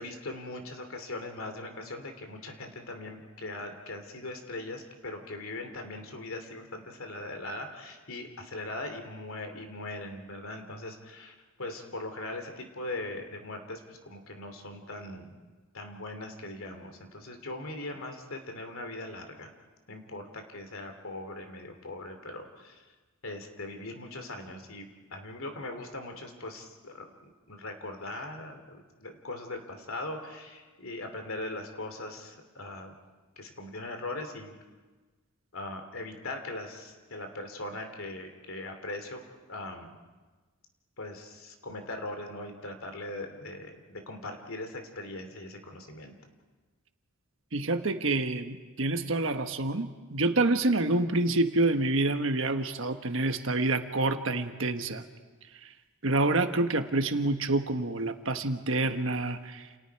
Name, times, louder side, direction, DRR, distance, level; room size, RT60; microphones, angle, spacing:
voice 1, 0.0-15.4 15.7-19.5 19.9-22.8 23.2-32.9 33.4-34.5 35.5-39.2 39.5-40.0 41.0-46.1, left 2 dB, 75° left, 5 dB, 2.9 m, -40 dB
voice 2, 47.5-55.0 56.0-59.6, right 2 dB, 65° right, 7 dB, 1.4 m, -27 dB
29.5 x 29.0 x 4.7 m, 1.3 s
head